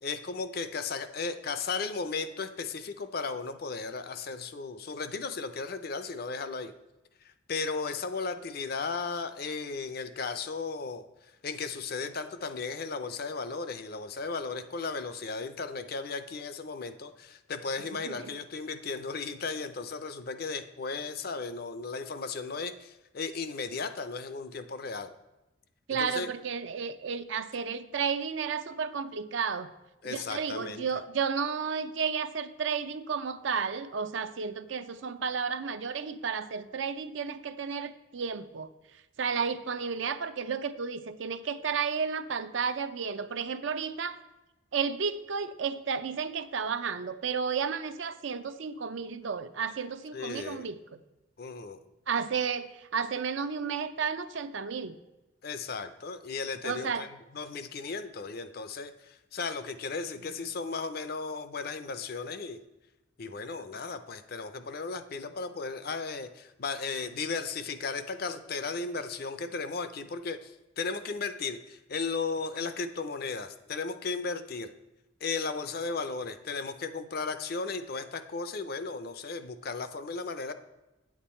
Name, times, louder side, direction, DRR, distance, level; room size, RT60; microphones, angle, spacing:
voice 1, 0.0-6.7 7.5-11.0 11.4-25.1 25.9-26.3 30.0-30.8 50.1-50.7 51.4-51.8 55.4-62.6 63.2-74.7 75.2-80.5, left 4 dB, 50° left, 11 dB, 0.5 m, -35 dB
voice 2, 25.9-29.7 30.0-38.7 39.2-44.2 44.7-50.8 52.1-55.0 56.6-57.1 60.5-60.6, right 6 dB, 65° right, 11 dB, 0.5 m, -32 dB
8.9 x 7.3 x 4.3 m, 1.0 s
head